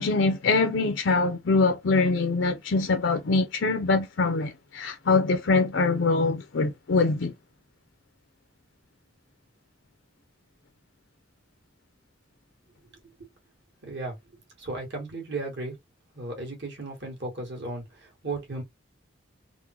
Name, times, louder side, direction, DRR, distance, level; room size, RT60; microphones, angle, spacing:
voice 1, 0.0-7.3, left 3 dB, 65° left, 0.5 m, -24 dB
voice 2, 13.8-14.1 14.6-15.7 16.1-18.6, right 2 dB, 60° right, 1.7 m, -35 dB
3.6 x 2.1 x 2.9 m
head